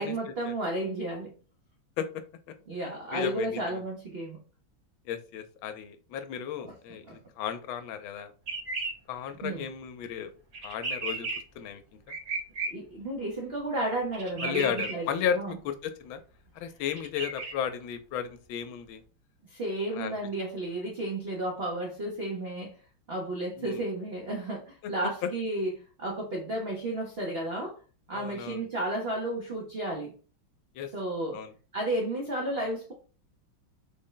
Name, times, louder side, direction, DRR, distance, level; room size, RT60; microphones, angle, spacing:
voice 1, 0.0-1.3 2.7-4.4 6.6-6.7 7.1-7.2 9.4-9.7 12.7-15.1 15.3-15.6 19.5-22.8 23.1-25.7 26.0-27.8 28.1-30.1 30.9-31.4 31.7-32.9, right 1 dB, 65° right, -1 dB, 0.5 m, -32 dB
voice 2, 3.1-3.8 5.0-8.3 9.1-10.3 10.6-11.3 11.5-11.8 14.4-16.2 16.5-19.0 19.9-20.2 23.6-23.8 25.2-25.3 28.1-28.6 30.7-30.9 31.3-31.5, left 8 dB, 85° left, 9 dB, 1.4 m, -34 dB
sound 1, 8.5-8.9 10.5-11.4 12.1-12.7 14.1-14.9 16.9-17.5, right 3 dB, 45° right, 1.1 m, -33 dB
3.7 x 2.1 x 3.7 m, 0.36 s
omnidirectional pair, 2.1 m